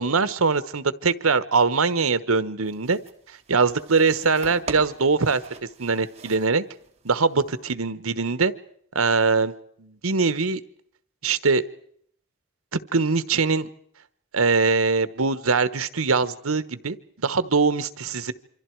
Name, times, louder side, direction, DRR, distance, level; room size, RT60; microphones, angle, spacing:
voice 1, 0.0-3.0 3.5-5.4 5.8-6.6 7.0-8.5 8.9-9.5 9.8-10.6 11.2-11.6 12.7-13.7 14.3-18.3, right 4 dB, 90° right, 14 dB, 1.2 m, -22 dB
sound 1, 2.6-7.6, right 3 dB, 30° right, 2.9 m, -42 dB
28.0 x 25.5 x 4.7 m, 0.62 s
head